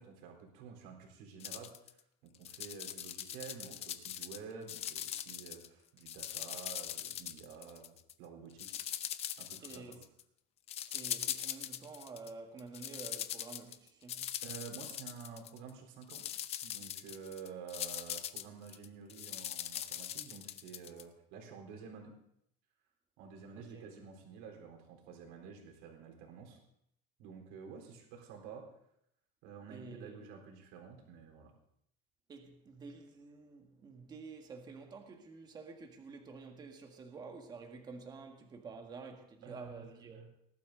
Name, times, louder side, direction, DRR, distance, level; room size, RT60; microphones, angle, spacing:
voice 1, 0.0-2.0 2.2-8.7 9.4-10.0 14.4-16.2 16.6-22.1 23.2-26.6 27.2-28.7 29.4-31.5 39.4-40.3, right 6 dB, 70° right, 4.1 m, -50 dB
sound 1, 1.4-1.9 2.3-4.4 4.7-5.7 6.0-8.1 8.6-10.2 10.7-12.3 12.6-15.7 16.0-21.0, left 11 dB, 35° left, 0.7 m, -41 dB
voice 2, 9.6-10.0 10.8-14.3 23.5-23.9 29.7-30.2 32.3-40.3, right 4 dB, 20° right, 1.7 m, -50 dB
19.5 x 12.0 x 3.9 m
cardioid pair, 170°, 19 cm